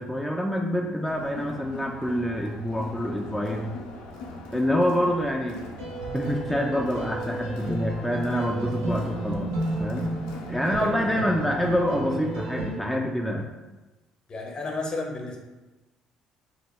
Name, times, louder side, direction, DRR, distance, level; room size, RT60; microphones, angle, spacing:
voice 1, 0.0-3.7 4.5-5.7 6.1-9.5 9.8-10.1 10.5-13.5, equal, ahead, 0 dB, 0.3 m, -26 dB
Crowd, 1.1-12.6, left 2 dB, 85° left, 0.4 m, -41 dB
sound 1, 5.8-12.7, right 2 dB, 85° right, 0.5 m, -32 dB
voice 2, 10.6-10.9 14.3-15.4, left 3 dB, 40° left, 1 dB, 0.7 m, -32 dB
2.8 x 2.2 x 3.0 m, 1.1 s
supercardioid pair, 65°, 2 cm